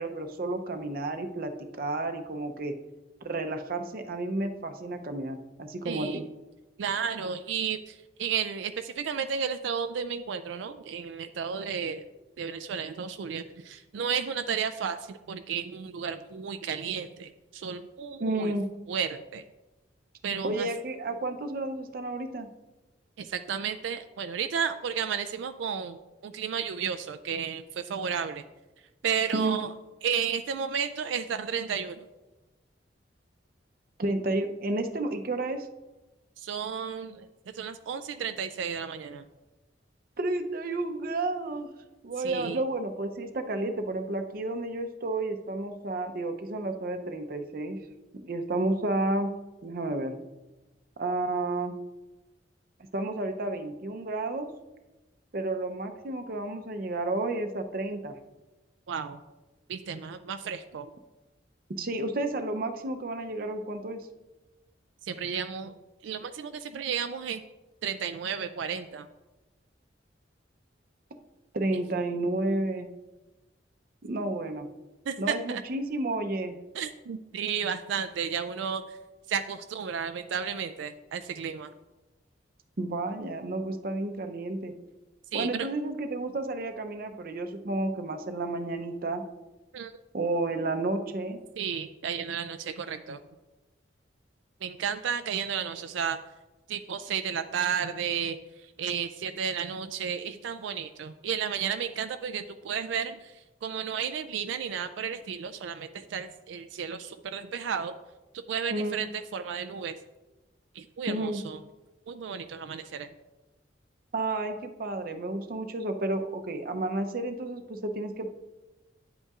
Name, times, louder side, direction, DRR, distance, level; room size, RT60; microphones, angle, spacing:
voice 1, 0.0-2.7 3.2-6.2 18.2-18.7 20.4-22.5 29.3-29.6 34.0-35.7 40.2-41.7 42.0-47.8 48.1-49.3 49.6-50.1 51.0-51.8 52.9-54.5 55.3-58.1 61.7-64.1 71.5-72.9 74.0-74.7 75.2-76.6 82.8-84.7 85.3-89.2 90.1-91.4 108.7-109.0 111.1-111.4 114.1-118.3, right 2 dB, 50° right, 6 dB, 0.6 m, -31 dB
voice 2, 5.8-6.3 6.8-12.1 12.4-18.5 18.9-19.4 20.2-20.7 23.2-26.0 26.2-28.5 28.8-29.7 30.0-32.1 36.4-39.3 42.2-42.6 58.9-59.2 59.7-60.9 65.0-65.8 66.0-67.4 67.8-69.1 75.1-75.6 76.7-79.0 79.3-81.7 85.3-85.7 89.7-89.9 91.6-93.2 94.6-96.2 96.7-107.9 108.3-110.0 110.7-111.6 112.1-113.1, right 7 dB, 90° right, 10 dB, 0.4 m, -33 dB
9.9 x 8.1 x 2.4 m, 1.1 s
head